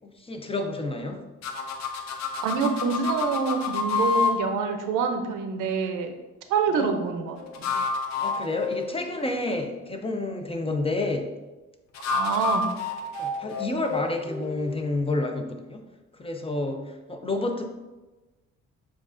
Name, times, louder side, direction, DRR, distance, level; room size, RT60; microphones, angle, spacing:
voice 1, 0.0-1.2 6.7-6.9 8.2-11.3 13.2-15.8 16.2-17.7, left 2 dB, 20° left, 4 dB, 0.4 m, -29 dB
sound 1, 1.4-4.4 7.4-9.5 11.9-14.8, left 5 dB, 60° left, 0.6 m, -29 dB
voice 2, 2.4-6.1 6.5-7.7 12.1-12.7, right 5 dB, 85° right, 6 dB, 0.6 m, -26 dB
7.1 x 2.4 x 2.5 m, 1.1 s
cardioid pair, 90°, 30 cm